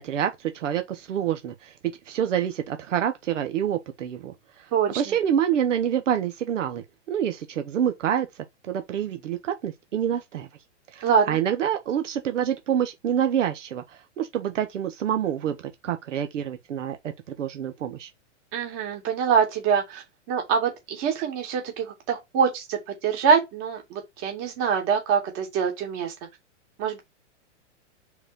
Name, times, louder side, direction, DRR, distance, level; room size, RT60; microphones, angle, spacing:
voice 1, 0.0-4.3 4.9-8.3 8.7-10.5 10.9-13.8 14.2-15.5 15.8-17.0 17.4-18.1, right 9 dB, 85° right, 1.1 m, -27 dB
voice 2, 4.7-5.1 11.0-11.4 18.5-26.1 26.8-27.0, right 6 dB, 35° right, 2.5 m, -24 dB
4.8 x 4.3 x 5.2 m
hypercardioid pair, 150°, 36 cm